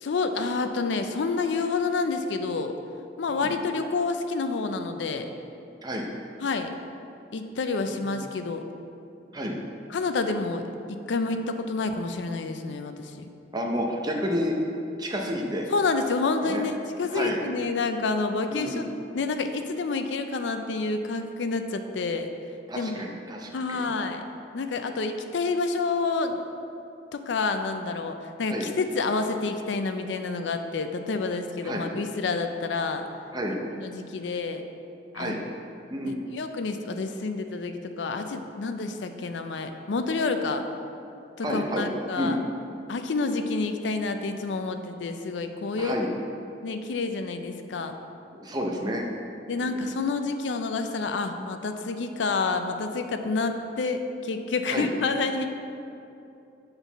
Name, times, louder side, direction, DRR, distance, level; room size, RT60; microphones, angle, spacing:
voice 1, 0.0-2.7 3.2-5.3 6.4-6.7 7.3-8.6 9.9-10.6 10.9-13.3 15.7-18.8 19.1-22.3 22.8-23.0 23.5-24.2 24.5-26.4 27.1-33.0 33.5-34.6 35.1-35.3 36.1-40.7 41.4-42.4 42.9-46.1 46.6-47.9 49.5-55.5, left 3 dB, 75° left, 7 dB, 0.4 m, -28 dB
voice 2, 7.8-8.2 9.3-9.5 13.5-14.6 15.0-15.6 16.4-16.6 17.1-17.4 18.5-18.9 22.7-24.0 28.5-28.7 31.6-31.8 33.3-33.6 35.1-35.4 35.9-36.2 41.4-41.9 42.2-42.3 45.8-46.1 48.3-49.1 49.6-49.8 54.7-54.9, equal, 20° right, 0 dB, 0.7 m, -30 dB
8.0 x 4.0 x 4.0 m, 2.7 s
head